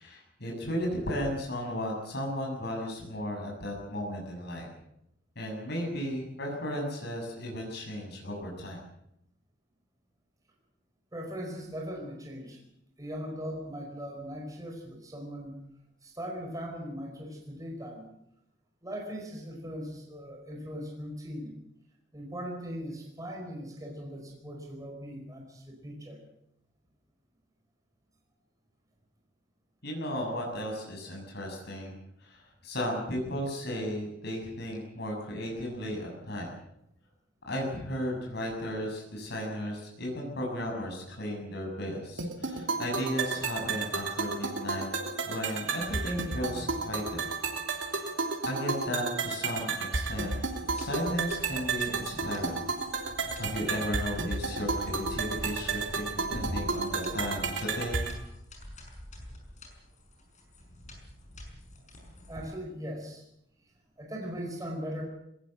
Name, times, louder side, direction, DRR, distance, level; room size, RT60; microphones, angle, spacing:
voice 1, 0.0-4.7 5.4-8.8 29.8-36.5 37.5-44.9 45.3-47.3 47.7-48.1 48.4-50.4 50.7-52.6 53.4-58.0, equal, 60° left, 0 dB, 7.1 m, -35 dB
voice 2, 11.1-12.6 13.0-15.6 16.0-18.1 18.8-21.5 22.1-26.2 62.3-63.2 64.0-65.0, equal, 20° right, 1 dB, 4.9 m, -39 dB
sound 1, 42.2-58.2, right 4 dB, 80° right, 3.2 m, -32 dB
sound 2, 50.4-62.6, equal, 40° left, 6.0 m, -45 dB
21.0 x 18.5 x 7.9 m, 0.79 s
head